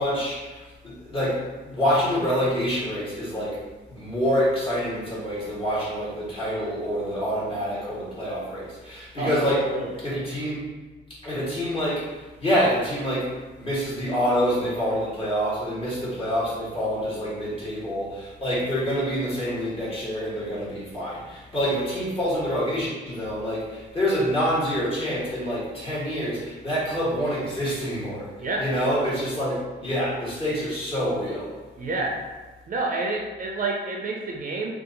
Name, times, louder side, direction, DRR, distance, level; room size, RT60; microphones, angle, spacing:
voice 1, 0.0-3.6 3.9-9.7 10.0-10.7 11.2-28.3 28.6-29.6 29.8-31.5, equal, 30° left, -8 dB, 1.4 m, -26 dB
voice 2, 9.2-10.0 28.4-28.6 31.8-32.2 32.7-34.7, right 3 dB, 45° right, 0 dB, 0.5 m, -29 dB
2.7 x 2.4 x 3.8 m, 1.3 s
cardioid pair, 120°, 19 cm